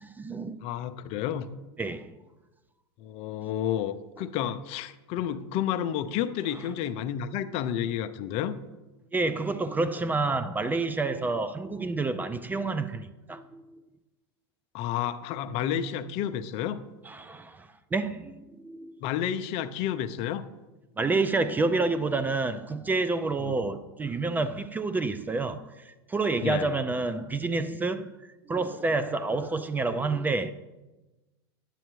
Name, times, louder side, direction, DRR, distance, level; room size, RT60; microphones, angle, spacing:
voice 1, 0.0-0.6 1.8-2.1 9.1-13.8 17.0-19.0 21.0-28.1 28.5-30.5, right 3 dB, 15° right, 0.3 m, -29 dB
voice 2, 0.6-1.5 3.0-8.5 14.7-16.8 19.0-20.5 23.4-23.6 26.4-26.7, left 10 dB, 45° left, 0.5 m, -30 dB
9.8 x 7.5 x 3.1 m
hypercardioid pair, 110°, 14 cm